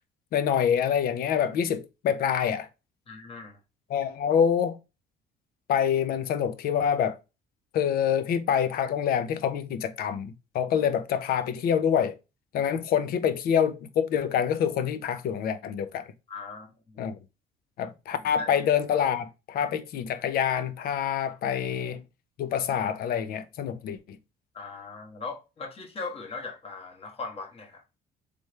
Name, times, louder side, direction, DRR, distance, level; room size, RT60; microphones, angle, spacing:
voice 1, 0.3-2.7 3.9-4.8 5.7-7.2 7.7-12.2 12.5-16.0 17.0-17.2 17.8-22.0 22.4-24.0, left 8 dB, 65° left, 0.6 m, -26 dB
voice 2, 3.1-3.6 16.3-17.0 18.2-18.5 24.5-27.8, left 4 dB, 35° left, 1.3 m, -39 dB
3.4 x 3.3 x 3.1 m
cardioid pair, 110°, 17 cm